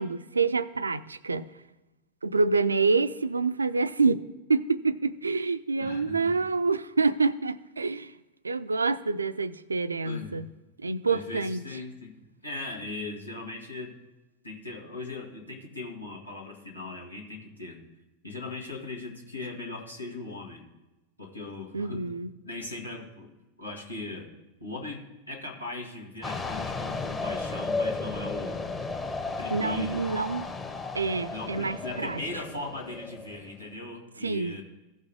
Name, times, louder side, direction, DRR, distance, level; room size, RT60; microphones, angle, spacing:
voice 1, 0.0-1.5 2.2-8.1 8.4-10.5 10.8-11.7 21.7-22.3 29.5-30.5 30.9-32.2 34.2-34.6, right 4 dB, 75° right, 0.4 m, -27 dB
voice 2, 5.8-6.4 10.0-10.4 11.0-14.0 14.4-17.8 18.2-20.6 21.2-22.2 22.4-24.3 24.6-28.6 29.4-30.1 31.3-34.6, left 2 dB, 85° left, 1.9 m, -39 dB
sound 1, 26.2-33.6, left 3 dB, 20° left, 1.2 m, -34 dB
16.0 x 5.4 x 3.5 m
figure-of-eight pair, 90°, 0 cm